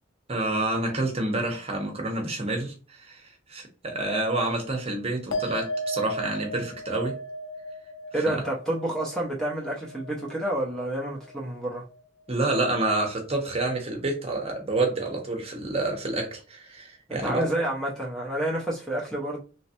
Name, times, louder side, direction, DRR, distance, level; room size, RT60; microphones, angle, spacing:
voice 1, 0.3-7.2 8.3-8.4 12.3-17.5, right 2 dB, 30° right, 0.9 m, -28 dB
sound 1, 5.3-12.0 12.3-12.9, equal, 80° left, 0.8 m, -37 dB
voice 2, 8.1-11.9 17.1-19.4, right 1 dB, 5° left, 0.7 m, -29 dB
3.2 x 3.1 x 2.9 m
head